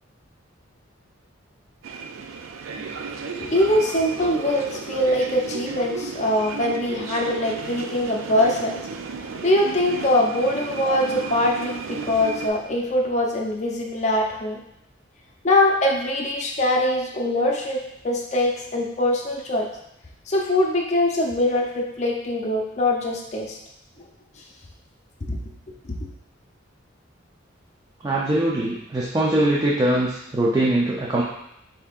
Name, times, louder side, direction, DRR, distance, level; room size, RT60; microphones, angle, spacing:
sound 1, 1.8-12.5, right 5 dB, 90° right, 0.4 m, -34 dB
voice 1, 3.4-8.8 9.4-14.6 15.4-17.8 18.0-19.7 20.3-23.6 25.3-25.4, left 1 dB, 35° left, -1 dB, 0.6 m, -22 dB
voice 2, 28.0-31.2, right 1 dB, 20° right, -5 dB, 0.5 m, -22 dB
7.0 x 2.8 x 2.4 m, 0.80 s
head